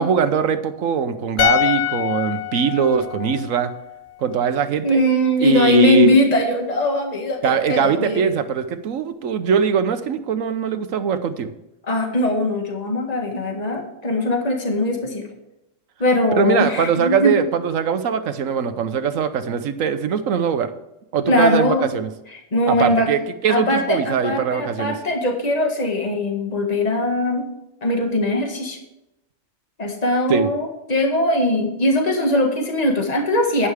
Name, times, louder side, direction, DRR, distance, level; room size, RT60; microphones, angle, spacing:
voice 1, 0.0-3.7 4.2-5.0 5.4-6.1 7.4-11.5 16.3-20.7 21.1-22.1 22.7-24.9 30.3-30.5, right 7 dB, 80° right, 11 dB, 1.3 m, -21 dB
sound 1, 1.4-4.6 4.9-5.0, left 14 dB, 70° left, 0.9 m, -25 dB
voice 2, 4.8-8.2 11.9-15.3 16.0-17.3 21.3-21.8 22.5-23.1 23.5-27.5 27.8-28.8 29.8-33.7, left 1 dB, 30° left, 2 dB, 1.9 m, -20 dB
11.0 x 10.0 x 3.5 m, 0.89 s
omnidirectional pair, 1.4 m